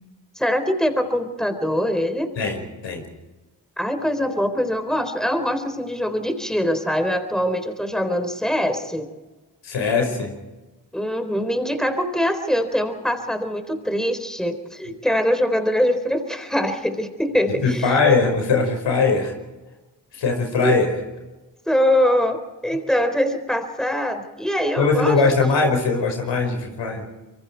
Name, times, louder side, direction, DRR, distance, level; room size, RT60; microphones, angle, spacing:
voice 1, 0.4-2.3 3.8-9.1 10.9-18.0 20.6-20.7 21.7-25.2, equal, ahead, 8 dB, 4.0 m, -23 dB
voice 2, 2.4-3.0 9.6-10.3 17.6-19.3 20.1-20.9 24.8-27.0, left 4 dB, 80° left, 4 dB, 5.1 m, -20 dB
26.5 x 23.5 x 4.6 m, 1.1 s
supercardioid pair, 45°, 43 cm